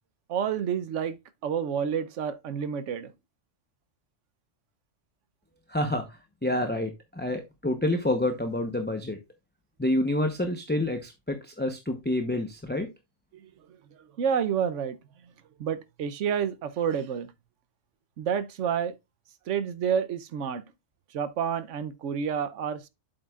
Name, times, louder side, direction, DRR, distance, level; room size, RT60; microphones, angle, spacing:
voice 1, 0.3-3.1 14.2-15.0 15.6-17.3 18.2-18.9 19.5-20.6 21.1-22.8, right 7 dB, 85° right, 1.1 m, -29 dB
voice 2, 5.7-9.2 9.8-12.9, left 1 dB, 10° left, 0.8 m, -28 dB
7.9 x 7.8 x 2.4 m
omnidirectional pair, 1.2 m